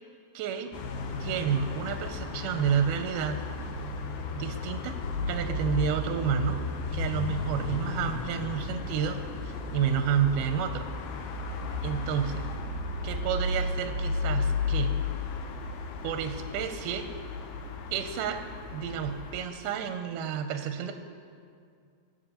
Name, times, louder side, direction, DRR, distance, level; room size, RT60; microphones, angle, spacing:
voice 1, 0.3-0.7 1.2-3.4 4.3-5.0 5.3-6.6 6.9-9.2 9.4-10.9 11.8-12.5 13.0-15.0 16.0-17.1 17.9-18.4 18.7-20.9, right 8 dB, 80° right, 7 dB, 2.0 m, -30 dB
sound 1, 0.7-19.5, left 3 dB, 75° left, 2.0 m, -34 dB
22.0 x 7.3 x 2.9 m, 2.3 s
omnidirectional pair, 3.9 m